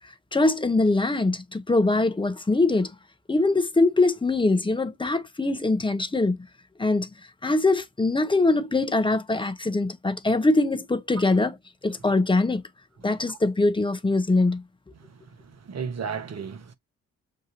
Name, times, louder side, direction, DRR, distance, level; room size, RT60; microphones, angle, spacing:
voice 1, 0.3-2.9 3.3-6.4 6.8-7.1 7.4-11.5 11.8-12.6 13.0-14.6, left 2 dB, 10° left, 0.7 m, -22 dB
voice 2, 13.0-13.4 14.9-16.7, right 6 dB, 40° right, 1.0 m, -36 dB
6.6 x 2.5 x 2.6 m
hypercardioid pair, 40°, 40 cm